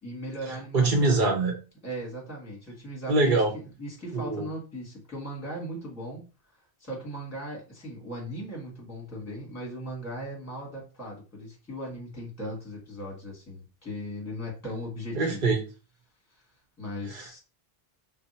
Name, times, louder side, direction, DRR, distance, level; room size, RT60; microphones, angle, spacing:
voice 1, 0.0-1.2 1.8-6.2 6.8-15.4 16.8-17.4, equal, 15° left, -3 dB, 1.3 m, -38 dB
voice 2, 0.7-1.6 3.1-3.5 4.1-4.5 15.1-15.6 17.1-17.4, right 3 dB, 55° right, 1 dB, 0.9 m, -24 dB
2.6 x 2.2 x 3.9 m, 0.32 s
omnidirectional pair, 1.0 m